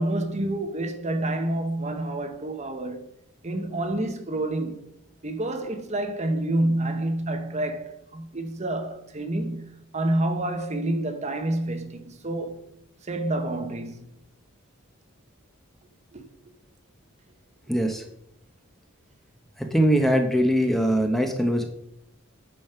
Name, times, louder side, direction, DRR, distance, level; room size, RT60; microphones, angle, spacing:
voice 1, 0.0-3.1 3.4-4.8 5.2-12.6 13.0-14.1 16.1-16.2, right 1 dB, 35° right, 1.0 m, -28 dB
voice 2, 17.7-18.0 19.6-21.6, equal, ahead, 0.8 m, -22 dB
8.9 x 5.3 x 5.7 m
head